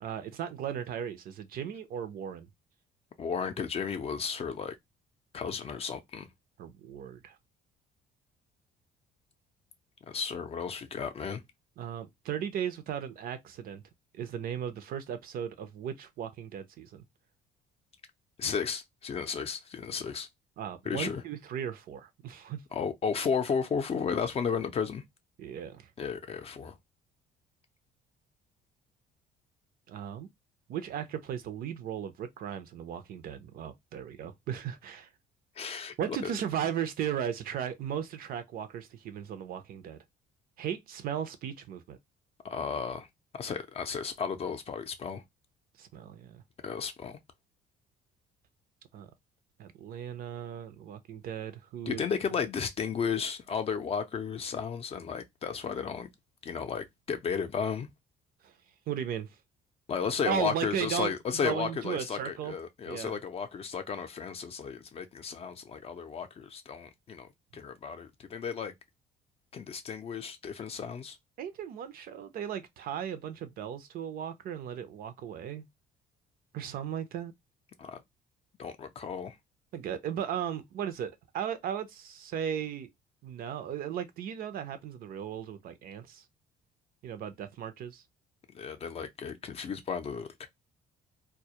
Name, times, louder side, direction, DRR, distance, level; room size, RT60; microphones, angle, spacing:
voice 1, 0.0-2.5 6.6-7.4 11.8-13.8 14.1-17.0 20.6-22.6 25.4-25.9 29.9-30.3 30.7-35.1 36.0-40.0 40.6-42.0 45.8-46.4 48.9-49.1 49.6-52.0 58.4-58.5 58.9-59.3 60.3-61.1 61.4-62.6 62.9-63.2 71.4-75.7 76.5-77.3 79.7-82.9 83.2-86.2 87.0-88.0, right 9 dB, 60° right, 0.5 m, -36 dB
voice 2, 3.2-4.8 5.3-6.3 10.1-11.4 18.4-20.3 20.9-21.2 22.7-25.0 26.0-26.7 35.6-36.3 42.4-43.1 43.3-45.2 46.6-47.2 51.9-56.1 56.4-57.9 59.9-68.7 69.5-71.2 77.8-78.0 78.6-79.4 88.5-90.5, left 6 dB, 35° left, 0.5 m, -34 dB
2.2 x 2.0 x 2.7 m
cardioid pair, 110°, 17 cm